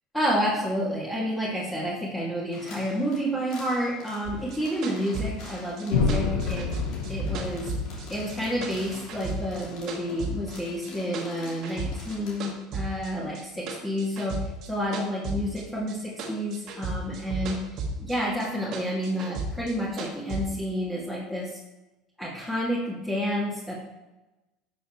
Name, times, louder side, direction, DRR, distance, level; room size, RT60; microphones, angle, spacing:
voice 1, 0.1-6.7 7.1-7.7 8.1-21.6 22.2-23.7, equal, 10° left, -8 dB, 2.5 m, -30 dB
sound 1, 2.5-12.5, left 4 dB, 65° left, 3.0 m, -47 dB
sound 2, 4.3-8.4 8.6-10.6 10.8-12.2 12.4-15.9 16.2-18.2 18.4-20.4, right 3 dB, 55° right, 1.8 m, -34 dB
sound 3, 5.9-9.9, left 4 dB, 85° left, 1.2 m, -29 dB
12.0 x 6.2 x 3.3 m, 1.1 s
hypercardioid pair, 90°, 0 cm